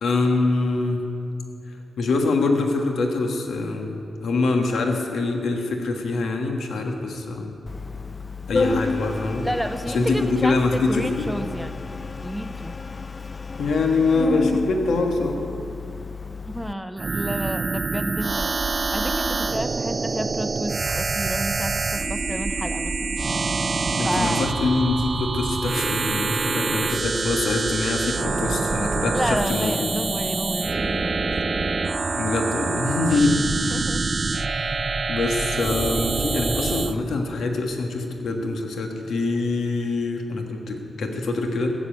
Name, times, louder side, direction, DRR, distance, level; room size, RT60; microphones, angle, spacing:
voice 1, 0.0-1.0 1.7-7.6 8.5-9.5 9.9-11.3 13.6-15.4 23.9-29.9 32.1-33.9 35.1-41.7, left 3 dB, 85° left, 3 dB, 1.4 m, -24 dB
Organ, 7.7-16.7, left 4 dB, 30° left, 0.4 m, -31 dB
voice 2, 9.4-11.9 12.2-12.8 16.5-18.6 18.9-23.2 24.0-24.4 29.1-31.2 33.1-33.4 33.7-34.1, equal, ahead, 9 dB, 0.7 m, -30 dB
sound 1, 17.0-36.9, right 4 dB, 40° right, 0.5 m, -26 dB
15.5 x 7.5 x 8.8 m, 2.7 s
cardioid pair, 85°, 0 cm